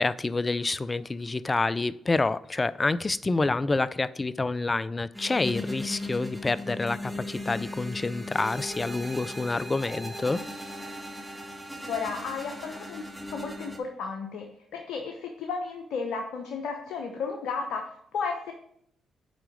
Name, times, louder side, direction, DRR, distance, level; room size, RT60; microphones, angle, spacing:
voice 1, 0.0-10.4, left 3 dB, 30° left, 17 dB, 0.3 m, -28 dB
sound 1, 5.1-13.8, left 1 dB, 5° right, 1.5 m, -38 dB
voice 2, 11.9-13.1 13.3-18.5, left 5 dB, 70° left, 3 dB, 0.8 m, -33 dB
6.2 x 4.7 x 5.1 m, 0.70 s
hypercardioid pair, 45°, 0 cm